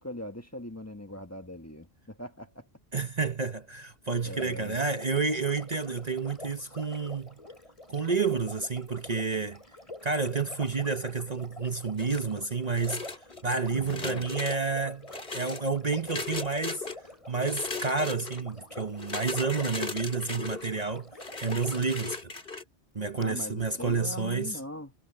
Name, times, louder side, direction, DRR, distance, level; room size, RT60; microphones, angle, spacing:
voice 1, 0.0-2.6 4.2-4.8 13.7-14.3 23.2-24.9, left 1 dB, 15° left, 1.4 m, -41 dB
voice 2, 2.9-7.3 7.9-9.6 10.0-13.1 13.4-15.1 15.3-16.9 17.3-21.1 21.4-22.3 22.9-24.6, right 4 dB, 40° right, 1.1 m, -30 dB
Sink (filling or washing), 4.2-22.0 23.2-23.3, left 1 dB, 30° left, 5.5 m, -47 dB
sound 1, 12.0-12.4 12.8-13.4 13.8-14.6 15.1-15.6 16.1-17.0 17.4-18.4 19.0-20.7 21.2-22.6, left 4 dB, 60° left, 2.6 m, -37 dB
omnidirectional pair, 1.1 m